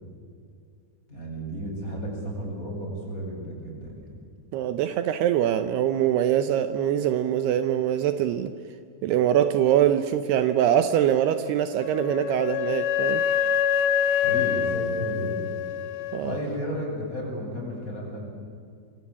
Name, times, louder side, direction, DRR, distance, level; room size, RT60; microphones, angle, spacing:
voice 1, 1.1-4.1 14.2-15.5 16.2-18.2, equal, 20° left, -1 dB, 8.1 m, -33 dB
voice 2, 4.5-8.5 9.0-13.2 16.1-16.4, right 10 dB, 75° right, 9 dB, 2.8 m, -23 dB
Wind instrument woodwind instrument, 11.8-16.4, left 9 dB, 85° left, 3.4 m, -26 dB
28.5 x 23.0 x 8.5 m, 2.4 s
omnidirectional pair, 4.9 m